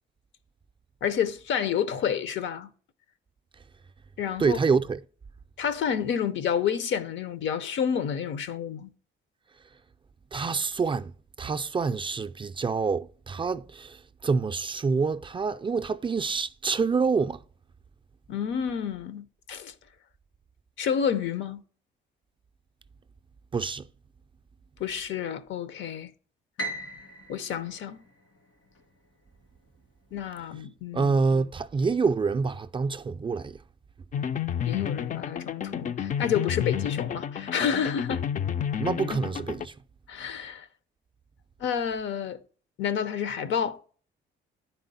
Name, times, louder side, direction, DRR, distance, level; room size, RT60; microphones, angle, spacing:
voice 1, 1.0-2.7 4.2-4.6 5.6-8.9 18.3-19.7 20.8-21.6 24.8-26.1 27.3-28.0 30.1-31.1 34.6-38.2 40.1-40.7 41.6-42.4 42.8-43.8, left 8 dB, 70° left, 0.7 m, -29 dB
voice 2, 4.4-5.0 10.3-11.1 11.4-17.4 23.5-23.9 30.9-33.6 38.8-39.7, right 4 dB, 25° right, 0.4 m, -27 dB
Piano, 26.6-28.8, right 1 dB, 90° left, 2.8 m, -38 dB
sound 1, 34.1-39.7, left 9 dB, 40° left, 0.4 m, -30 dB
9.6 x 4.4 x 4.0 m
cardioid pair, 90°, 20 cm